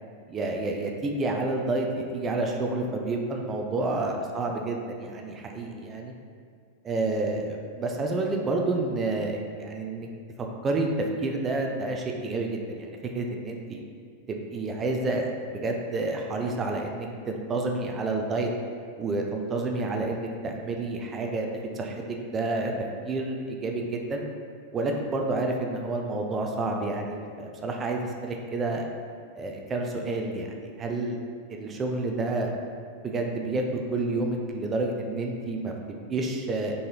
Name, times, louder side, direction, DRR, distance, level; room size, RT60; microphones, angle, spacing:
voice 1, 0.3-6.1 6.8-10.1 10.6-10.9 11.2-13.8 14.3-18.5 19.0-21.5 21.8-22.7 23.1-24.3 24.7-28.9 29.3-31.2 31.5-32.5 33.0-33.6 33.9-36.7, right 2 dB, 25° right, 1 dB, 0.3 m, -29 dB
3.8 x 3.1 x 2.2 m, 2.1 s
figure-of-eight pair, 90°, 0 cm